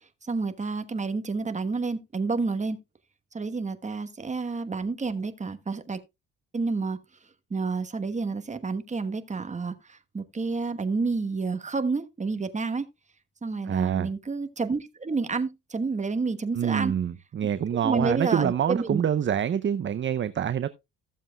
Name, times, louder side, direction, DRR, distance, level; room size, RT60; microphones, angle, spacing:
voice 1, 0.2-2.8 3.3-6.0 6.5-7.0 7.5-12.9 13.4-16.9 17.8-19.0, right 4 dB, 25° right, 1.2 m, -29 dB
voice 2, 13.6-14.1 16.5-20.7, right 9 dB, 40° right, 0.6 m, -26 dB
14.5 x 7.3 x 2.3 m
cardioid pair, 90°, 30 cm